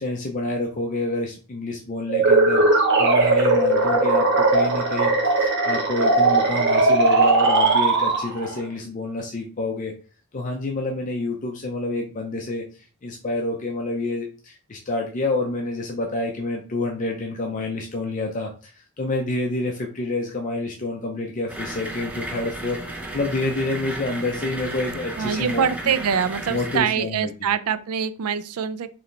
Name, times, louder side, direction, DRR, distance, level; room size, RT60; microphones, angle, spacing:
voice 1, 0.0-2.6 3.0-5.1 5.6-9.9 10.3-25.9 26.5-27.3, left 2 dB, 35° left, 1 dB, 0.5 m, -28 dB
sound 1, 2.1-8.6, right 3 dB, 50° right, 1.0 m, -18 dB
sound 2, 21.5-26.8, right 1 dB, 5° right, 0.7 m, -34 dB
voice 2, 25.2-28.9, right 7 dB, 85° right, 13 dB, 0.4 m, -24 dB
4.7 x 3.2 x 3.2 m, 0.37 s
head